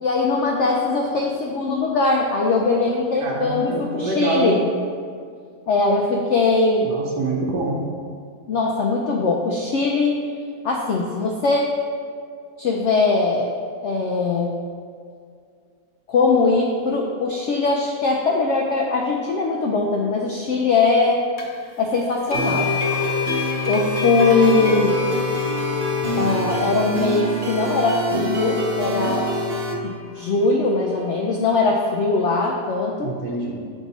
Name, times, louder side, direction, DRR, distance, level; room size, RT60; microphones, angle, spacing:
voice 1, 0.0-4.6 5.7-6.9 8.5-10.1 10.6-11.7 12.6-13.5 13.8-14.5 16.1-21.2 21.8-22.7 23.7-25.0 26.2-29.3 29.8-33.1, left 3 dB, 85° left, 0 dB, 0.6 m, -21 dB
voice 2, 3.2-4.5 6.8-7.8 33.0-33.5, right 3 dB, 90° right, -2 dB, 1.4 m, -25 dB
sound 1, 21.4-21.5 22.3-30.3, left 5 dB, 45° left, 0.9 m, -30 dB
sound 2, 22.3-29.7, left 1 dB, 50° right, 0.7 m, -25 dB
7.1 x 3.6 x 4.0 m, 2.2 s
omnidirectional pair, 1.8 m